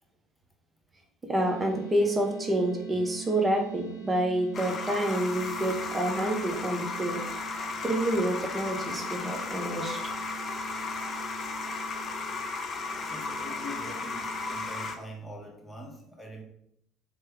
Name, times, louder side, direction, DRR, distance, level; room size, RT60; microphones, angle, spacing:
sound 1, 1.3-15.2, right 9 dB, 80° left, 0.8 m, -44 dB
voice 1, 1.3-7.2 7.8-10.1, right 1 dB, 25° right, 1 dB, 0.8 m, -28 dB
sound 2, 4.5-15.0, left 4 dB, 45° left, 0.5 m, -35 dB
voice 2, 13.1-16.4, equal, 10° left, 0 dB, 1.0 m, -43 dB
3.1 x 2.2 x 3.5 m, 0.73 s
hypercardioid pair, 65°, 0 cm